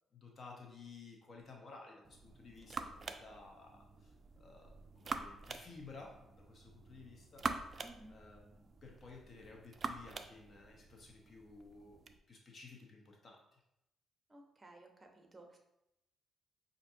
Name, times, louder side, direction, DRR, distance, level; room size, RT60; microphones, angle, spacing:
voice 1, 0.1-12.0 12.3-13.6, left 4 dB, 45° left, 0 dB, 0.7 m, -55 dB
sound 1, 2.0-12.2, right 4 dB, 40° right, 0.3 m, -46 dB
voice 2, 7.8-8.2 14.3-15.6, right 2 dB, 25° right, 3 dB, 0.7 m, -57 dB
5.6 x 2.5 x 2.6 m, 0.86 s
cardioid pair, 90°, 0 cm